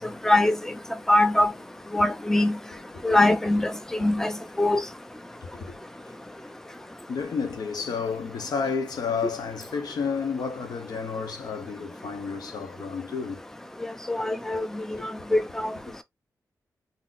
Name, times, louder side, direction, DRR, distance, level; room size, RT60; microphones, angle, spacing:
voice 1, 0.2-0.6 1.1-1.5 1.9-2.6 3.0-3.7 4.0-4.3 4.6-4.8 14.1-15.7, left 1 dB, 5° left, 0.5 m, -22 dB
voice 2, 5.4-5.8 7.1-13.4 14.9-15.1, left 5 dB, 80° left, 0.7 m, -31 dB
3.7 x 2.7 x 2.5 m
cardioid pair, 65°, 7 cm